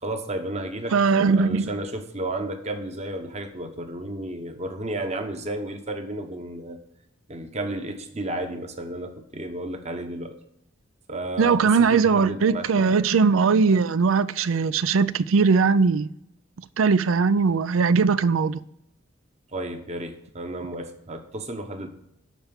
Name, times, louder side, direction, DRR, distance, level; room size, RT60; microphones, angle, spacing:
voice 1, 0.0-1.0 1.3-6.8 7.3-10.4 11.1-13.0 19.5-21.9, right 1 dB, 35° right, 1.0 m, -32 dB
voice 2, 0.9-1.7 11.4-16.1 16.8-18.6, right 5 dB, 90° right, 0.5 m, -20 dB
11.5 x 4.4 x 7.0 m
head